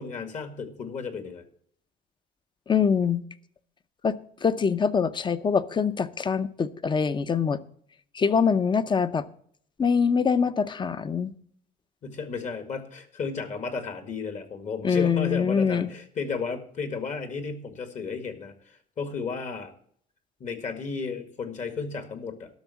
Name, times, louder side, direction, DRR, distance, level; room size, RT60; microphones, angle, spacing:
voice 1, 0.0-1.4 12.0-19.7 20.4-22.6, left 5 dB, 45° left, 2.0 m, -33 dB
voice 2, 2.7-3.2 4.0-4.2 4.4-7.6 8.1-9.2 9.8-11.3 14.8-15.9, left 6 dB, 25° left, 0.7 m, -24 dB
12.0 x 6.3 x 7.0 m
cardioid pair, 110°, 17 cm